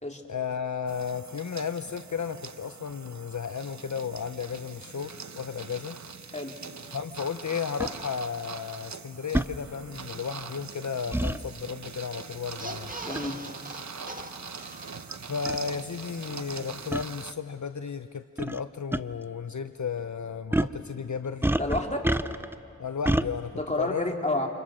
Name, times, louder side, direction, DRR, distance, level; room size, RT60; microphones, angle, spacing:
voice 1, 0.3-6.0 6.9-12.9 15.3-21.5 22.8-23.5 23.8-24.5, left 6 dB, 65° left, 10 dB, 0.7 m, -34 dB
sound 1, 0.9-17.3, right 5 dB, 60° right, 0.9 m, -42 dB
sound 2, 7.8-7.9 9.3-9.5 11.1-11.4 13.2-13.4 14.2-14.3 15.1-15.2 15.5-15.6 16.9-17.1 18.4-18.6 18.9-19.0 20.5-20.8 21.4-22.5 23.1-23.3, right 1 dB, 5° right, 0.6 m, -26 dB
sound 3, 12.6-15.5 15.8-15.9 16.1-16.3, right 2 dB, 25° right, 1.5 m, -42 dB
voice 2, 13.0-13.4 21.5-22.2 23.5-24.5, left 2 dB, 20° left, 1 dB, 3.2 m, -30 dB
29.5 x 28.5 x 6.4 m, 2.5 s
wide cardioid pair, 45°, 31 cm